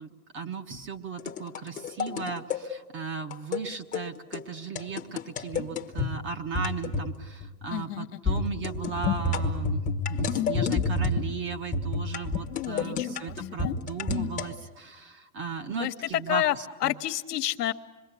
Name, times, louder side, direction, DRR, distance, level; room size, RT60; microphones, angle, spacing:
voice 1, 0.0-16.9, right 5 dB, 25° right, 7 dB, 1.3 m, -36 dB
sound 1, 1.2-2.6 3.3-3.6 3.9-4.1 4.3-4.4 4.8-6.1 6.5-7.1 7.4-7.7 8.3-11.3 11.7-14.5, left 4 dB, 15° left, 1.1 m, -29 dB
voice 2, 7.7-8.5 12.5-13.8 15.8-16.5 16.8-17.7, left 13 dB, 80° left, 7 dB, 1.3 m, -30 dB
26.0 x 23.0 x 8.4 m, 1.2 s
hypercardioid pair, 140°, 47 cm